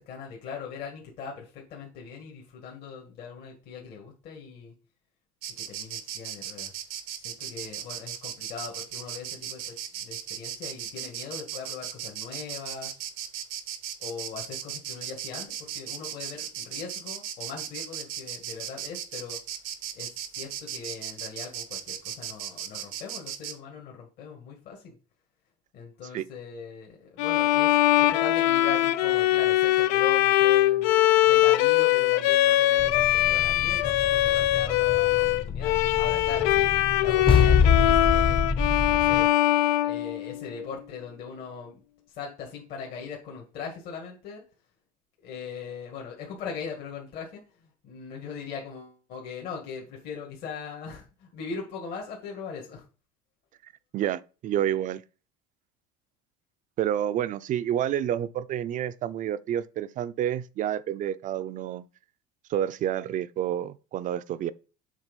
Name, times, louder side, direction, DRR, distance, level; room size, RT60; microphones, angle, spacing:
voice 1, 0.0-4.7 5.6-6.7 7.2-13.0 14.0-19.4 19.9-25.0 25.7-30.9 31.3-38.4 38.9-39.3 39.8-41.8 42.1-44.4 45.2-52.9, left 5 dB, 60° left, 1.9 m, -40 dB
Insect, 5.4-23.6, right 10 dB, 85° right, 0.9 m, -37 dB
Bowed string instrument, 27.2-40.6, left 14 dB, 80° left, 0.5 m, -22 dB
sound 1, 32.8-39.3, left 6 dB, 30° left, 0.7 m, -26 dB
voice 2, 53.9-55.0 56.8-61.9 62.5-64.5, right 10 dB, 45° right, 0.5 m, -29 dB
7.4 x 3.6 x 5.3 m
supercardioid pair, 110°, 19 cm